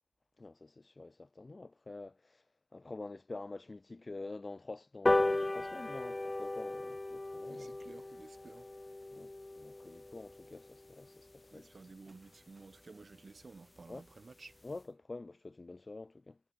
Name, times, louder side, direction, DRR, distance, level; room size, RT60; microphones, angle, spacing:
voice 1, 0.4-2.4 2.7-7.8 9.1-11.8 13.9-14.0 14.6-16.4, left 3 dB, 50° left, 1.6 m, -47 dB
sound 1, 5.1-11.8 12.2-12.3 12.6-12.8 13.0-13.1 13.4-13.5 13.8-14.1 14.5-14.6, left 2 dB, 35° left, 0.6 m, -36 dB
voice 2, 7.5-8.7 11.5-14.6, right 3 dB, 70° right, 3.8 m, -54 dB
wide cardioid pair, 75°, 0 cm